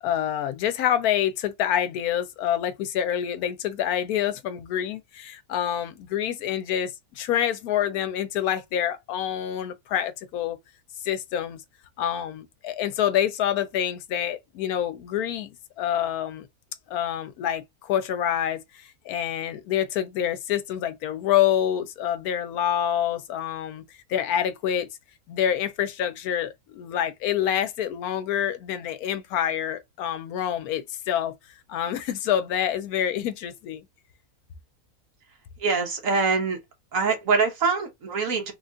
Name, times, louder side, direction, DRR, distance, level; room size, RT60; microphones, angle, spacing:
voice 1, 0.0-10.6 11.0-11.6 12.0-16.5 16.9-23.8 24.1-24.9 25.3-31.3 31.7-33.8, left 10 dB, 85° left, 1.1 m, -27 dB
voice 2, 35.6-36.6 36.9-38.5, right 4 dB, 65° right, 1.3 m, -24 dB
3.3 x 2.3 x 2.5 m
omnidirectional pair, 1.5 m